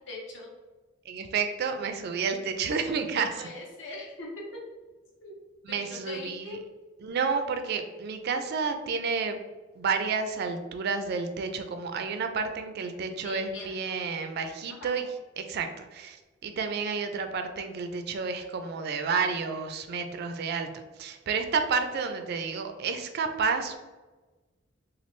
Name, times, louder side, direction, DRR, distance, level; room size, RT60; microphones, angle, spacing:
voice 1, 0.1-0.5 3.0-4.6 5.2-5.4 5.7-6.6 13.2-14.0 14.7-15.1, left 2 dB, 65° left, -2 dB, 0.9 m, -42 dB
voice 2, 1.1-3.3 5.7-6.6 7.0-9.4 9.8-15.0 15.4-16.2 16.4-23.8, right 5 dB, 55° right, 7 dB, 0.3 m, -30 dB
3.0 x 2.3 x 3.1 m, 1.2 s
head